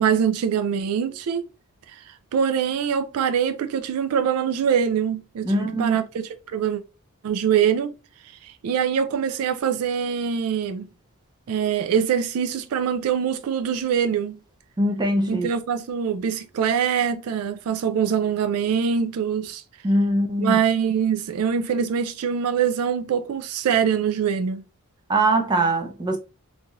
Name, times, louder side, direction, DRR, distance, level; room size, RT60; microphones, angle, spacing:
voice 1, 0.0-1.5 1.9-2.0 2.3-6.8 7.2-8.0 8.4-10.9 11.5-14.4 15.3-19.6 20.4-24.6, right 7 dB, 75° right, 0.3 m, -23 dB
voice 2, 5.4-6.0 14.8-15.5 19.8-20.6 25.1-26.2, right 1 dB, 20° right, 0.5 m, -22 dB
3.1 x 2.6 x 2.3 m
head